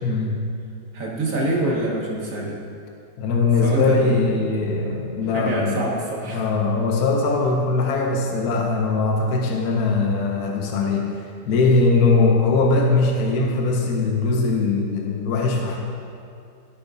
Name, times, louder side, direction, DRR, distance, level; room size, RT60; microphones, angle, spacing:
voice 1, 0.0-0.5 3.2-5.8 6.3-11.1 11.5-15.8, left 3 dB, 65° left, 1 dB, 1.1 m, -20 dB
voice 2, 0.9-2.5 3.6-4.2 5.3-6.5, right 1 dB, 50° right, -3 dB, 1.7 m, -25 dB
14.5 x 5.3 x 2.7 m, 2.5 s
omnidirectional pair, 1.9 m